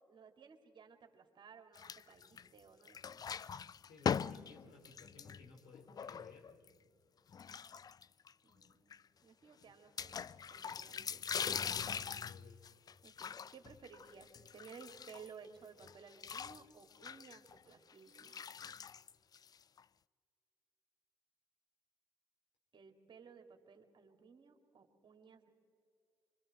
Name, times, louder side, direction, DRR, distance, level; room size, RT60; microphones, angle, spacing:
voice 1, 0.1-3.2 8.4-11.4 13.0-18.4 22.7-25.5, right 6 dB, 50° right, 5 dB, 2.5 m, -58 dB
sound 1, 1.8-2.6 2.9-6.7 7.3-8.3 8.6-8.7 8.9-9.0 10.0-15.5 15.8-19.8, left 7 dB, 40° left, 0.4 m, -42 dB
voice 2, 3.8-6.6 11.8-12.6, left 3 dB, 75° left, 0 dB, 4.4 m, -59 dB
26.0 x 24.5 x 4.4 m, 2.4 s
hypercardioid pair, 55°, 10 cm